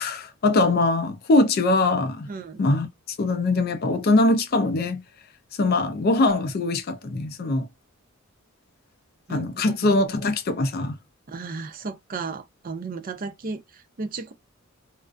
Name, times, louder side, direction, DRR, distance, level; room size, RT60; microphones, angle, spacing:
voice 1, 0.0-2.3 2.6-2.9 3.2-5.0 5.6-7.7 9.3-11.0, left 2 dB, 45° left, 0.4 m, -22 dB
voice 2, 2.3-2.6 9.3-10.0 11.3-14.3, right 4 dB, 45° right, 0.4 m, -34 dB
2.4 x 2.1 x 2.4 m
head